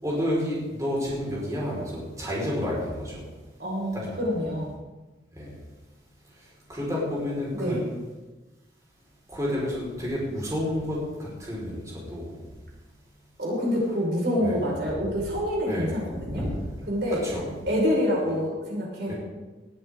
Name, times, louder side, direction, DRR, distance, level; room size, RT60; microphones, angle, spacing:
voice 1, 0.0-3.2 3.9-4.1 5.3-5.6 6.7-7.8 9.3-12.4 14.4-14.5 15.7-16.6 17.2-17.5 19.1-19.2, left 1 dB, 20° right, -5 dB, 5.0 m, -30 dB
voice 2, 3.6-4.7 7.5-7.9 13.4-16.5 16.9-17.2 17.7-19.1, equal, 70° right, -3 dB, 5.4 m, -27 dB
19.0 x 13.0 x 3.8 m, 1.2 s
head